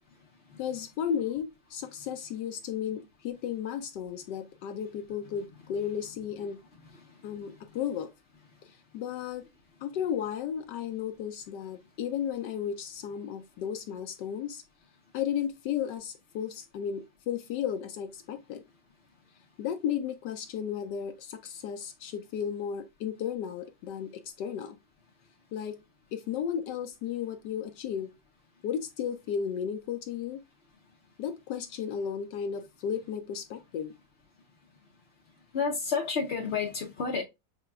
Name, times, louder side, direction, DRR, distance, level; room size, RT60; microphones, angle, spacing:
voice 1, 0.6-6.6 7.2-8.1 8.6-9.4 9.8-14.6 15.1-18.6 19.6-24.8 25.5-25.8 26.1-28.1 28.6-30.4 31.2-33.9, left 8 dB, 75° left, 1.1 m, -34 dB
voice 2, 35.5-37.2, left 5 dB, 55° left, 0.7 m, -30 dB
6.7 x 2.9 x 2.3 m
omnidirectional pair, 2.0 m